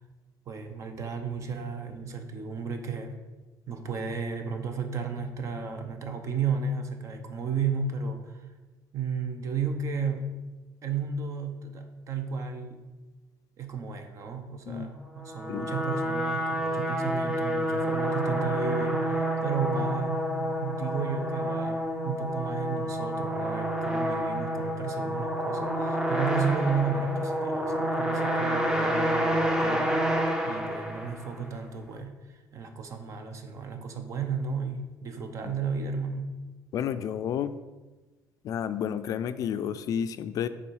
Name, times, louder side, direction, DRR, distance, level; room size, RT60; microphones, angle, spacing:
voice 1, 0.5-3.1 3.7-8.5 8.9-10.4 10.8-12.8 13.6-36.4, right 5 dB, 45° right, 6 dB, 0.7 m, -33 dB
sound 1, 15.2-31.5, equal, 10° right, 0.7 m, -29 dB
voice 2, 36.7-37.6 38.4-40.5, left 9 dB, 55° left, 12 dB, 0.3 m, -31 dB
6.0 x 4.0 x 4.7 m, 1.2 s
cardioid pair, 135°, 7 cm